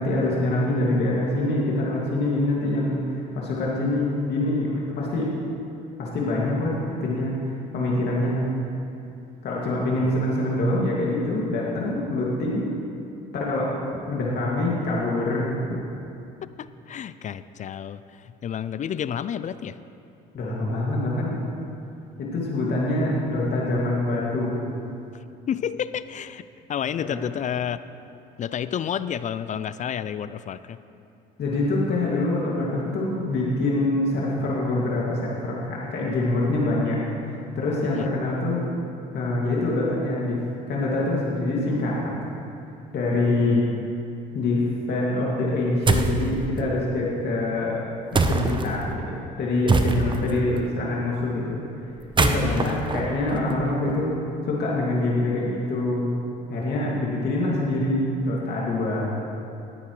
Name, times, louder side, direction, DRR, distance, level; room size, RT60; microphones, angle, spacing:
voice 1, 0.0-5.3 6.0-8.4 9.4-12.7 13.3-13.8 14.1-15.8 20.3-21.4 22.2-24.6 27.0-27.2 31.4-37.0 37.6-38.6 39.1-40.4 40.7-42.2 42.9-43.7 44.3-47.8 48.1-51.6 52.2-54.2 54.5-56.1 56.5-59.2, left 2 dB, 50° left, -4 dB, 2.3 m, -25 dB
voice 2, 10.0-10.3 16.6-19.8 25.1-26.4 26.7-27.8 28.4-30.8 37.9-38.1 43.4-43.9 52.4-52.9, left 9 dB, 35° left, 14 dB, 0.4 m, -31 dB
sound 1, 45.9-46.2 48.1-48.7 49.7-50.3 52.0-53.9, right 3 dB, 25° right, 0.9 m, -23 dB
19.0 x 9.5 x 3.2 m, 2.7 s
hypercardioid pair, 70°, 21 cm